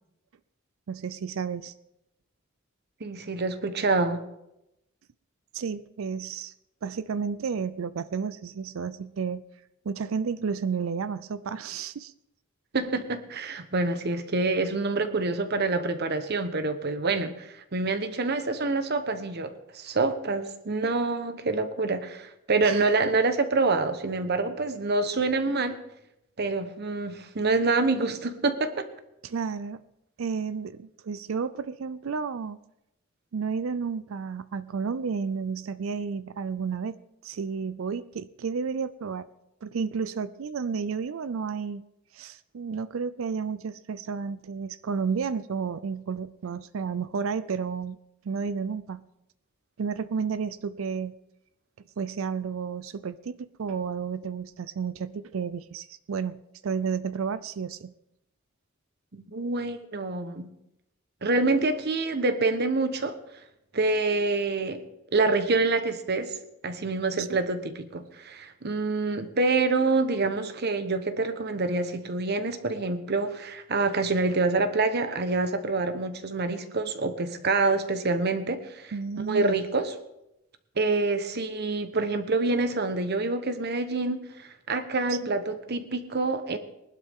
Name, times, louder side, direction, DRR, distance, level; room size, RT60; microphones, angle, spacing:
voice 1, 0.9-1.7 5.5-6.5 6.8-9.4 9.8-12.1 22.6-22.9 29.2-29.8 30.2-32.6 33.3-37.0 37.2-39.3 39.6-41.8 42.1-48.0 48.2-49.0 49.8-51.1 52.0-57.9 67.2-67.4 78.9-79.6 85.1-85.3, right 5 dB, 75° right, 15 dB, 0.5 m, -32 dB
voice 2, 3.0-4.2 12.7-25.8 26.4-28.9 59.1-60.5 61.2-63.2 63.7-64.8 65.1-66.4 66.6-80.0 80.8-84.2 84.7-86.6, right 3 dB, 55° right, 9 dB, 1.1 m, -26 dB
20.0 x 12.0 x 3.7 m, 0.87 s
head